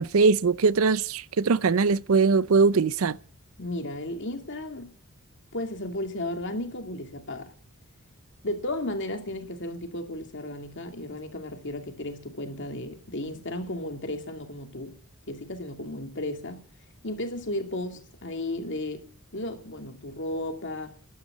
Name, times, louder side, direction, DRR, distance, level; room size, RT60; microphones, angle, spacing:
voice 1, 0.0-3.2, right 4 dB, 70° right, 0.5 m, -21 dB
voice 2, 3.6-4.9 5.5-7.5 8.4-15.0 15.3-16.6 17.0-21.0, left 1 dB, 55° left, 2.5 m, -34 dB
12.0 x 9.2 x 8.4 m
head